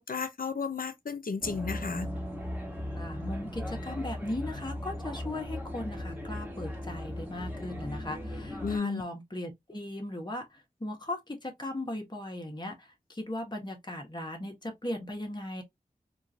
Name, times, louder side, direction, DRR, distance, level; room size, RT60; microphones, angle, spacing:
voice 1, 0.0-2.1 8.6-9.0, left 5 dB, 70° left, 0.7 m, -33 dB
sound 1, 1.4-8.8, left 1 dB, 10° right, 1.6 m, -37 dB
voice 2, 2.9-15.6, left 1 dB, 30° left, 1.3 m, -38 dB
3.7 x 2.6 x 2.6 m
wide cardioid pair, 45°, 15 cm